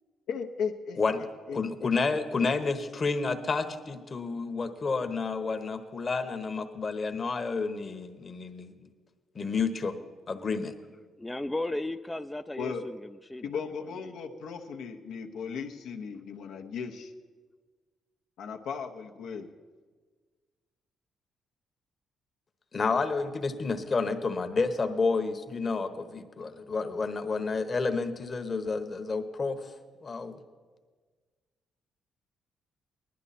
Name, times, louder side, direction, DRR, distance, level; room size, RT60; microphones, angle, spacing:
voice 1, 0.3-1.9 2.4-2.5 12.6-12.8 13.4-17.1 18.4-19.5, left 6 dB, 80° left, 4 dB, 0.9 m, -37 dB
voice 2, 1.5-8.7 9.3-10.0 10.3-10.8 22.7-29.7 30.0-30.3, left 4 dB, 40° left, 7 dB, 1.1 m, -30 dB
voice 3, 11.2-13.5 14.0-14.1, left 2 dB, 10° left, 7 dB, 0.3 m, -35 dB
19.5 x 11.5 x 4.2 m, 1.5 s
cardioid pair, 90°, 0 cm